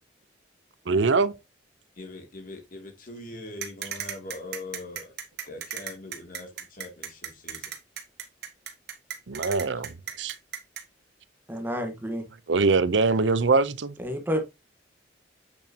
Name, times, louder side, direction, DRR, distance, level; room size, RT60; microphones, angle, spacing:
voice 1, 0.9-1.3 9.3-10.3 12.5-13.9, right 4 dB, 80° right, 0.7 m, -23 dB
voice 2, 2.0-5.1 5.5-7.7 9.8-9.9, left 2 dB, 50° left, 2.5 m, -42 dB
sound 1, 3.6-10.8, right 8 dB, 60° right, 1.5 m, -35 dB
voice 3, 11.5-12.2 14.0-14.4, equal, 10° right, 1.3 m, -29 dB
8.1 x 7.2 x 2.8 m
head